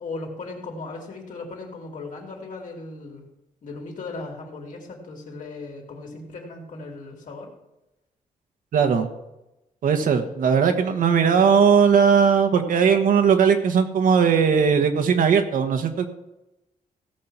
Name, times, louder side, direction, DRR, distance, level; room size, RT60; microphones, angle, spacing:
voice 1, 0.0-3.2 3.6-7.5, left 3 dB, 65° left, 0 dB, 3.3 m, -37 dB
voice 2, 8.7-9.1 9.8-16.1, right 6 dB, 75° right, 6 dB, 1.4 m, -18 dB
16.5 x 6.5 x 5.9 m, 0.92 s
cardioid pair, 105°, 14 cm